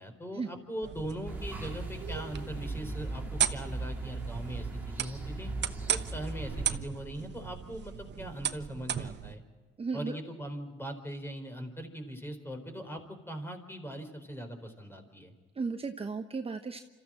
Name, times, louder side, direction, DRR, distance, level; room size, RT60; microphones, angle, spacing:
voice 1, 0.0-5.5 5.9-9.4 9.9-15.3, equal, 10° left, 6 dB, 4.2 m, -40 dB
sound 1, 0.8-9.3, right 9 dB, 60° right, 1.1 m, -37 dB
sound 2, 1.2-6.8, right 2 dB, 10° right, 3.2 m, -39 dB
voice 2, 9.8-10.1 15.6-16.8, right 4 dB, 30° right, 6 dB, 1.1 m, -35 dB
26.5 x 14.5 x 7.5 m, 1.4 s
cardioid pair, 90°, 20 cm